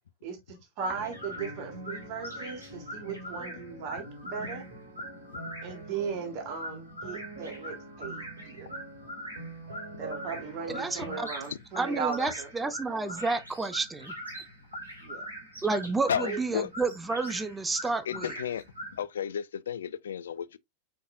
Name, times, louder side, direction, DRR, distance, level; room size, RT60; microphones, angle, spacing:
voice 1, 0.2-4.6 5.6-8.7 10.0-13.2 15.0-15.3 16.2-16.6, right 5 dB, 45° right, 1.6 m, -37 dB
sound 1, 0.8-11.2, right 2 dB, 60° right, 1.7 m, -45 dB
sound 2, 0.9-19.0, equal, 90° left, 2.1 m, -42 dB
voice 2, 10.7-11.3 11.8-14.1 15.6-18.3, right 3 dB, 10° right, 0.6 m, -30 dB
voice 3, 16.1-16.7 18.1-18.6 18.9-20.6, left 8 dB, 65° left, 0.3 m, -33 dB
4.9 x 4.3 x 2.5 m
figure-of-eight pair, 90°, 0 cm